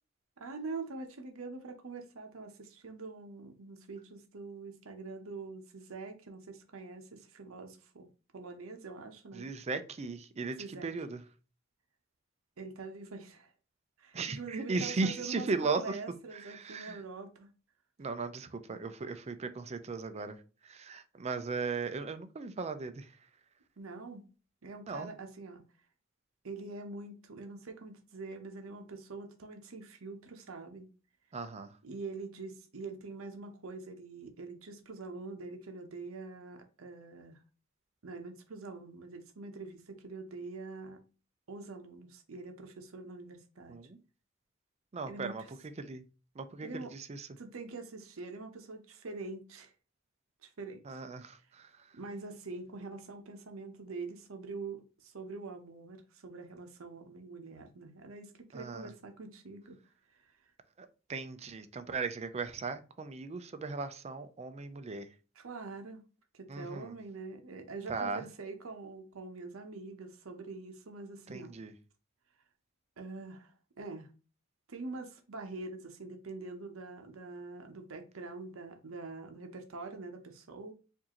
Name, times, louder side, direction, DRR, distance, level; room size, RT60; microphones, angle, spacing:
voice 1, 0.4-8.1 8.3-9.5 10.6-10.9 12.6-13.5 14.0-17.5 23.8-24.2 24.6-25.6 26.4-30.9 31.8-37.4 38.0-41.0 41.5-43.8 45.1-45.3 46.6-46.9 47.4-49.7 50.4-51.0 51.9-59.8 60.2-60.3 65.4-66.0 66.3-71.5 73.0-74.1 74.7-80.7, right 3 dB, 75° right, 0.8 m, -44 dB
voice 2, 9.3-11.2 14.1-16.0 16.3-17.0 18.0-23.3 24.9-25.1 31.3-31.8 43.7-44.0 44.9-46.1 46.3-47.3 50.8-52.0 58.5-58.9 60.8-65.2 66.5-67.0 67.9-68.3 71.3-71.7, right 4 dB, 30° right, 0.4 m, -37 dB
4.7 x 2.6 x 2.9 m
head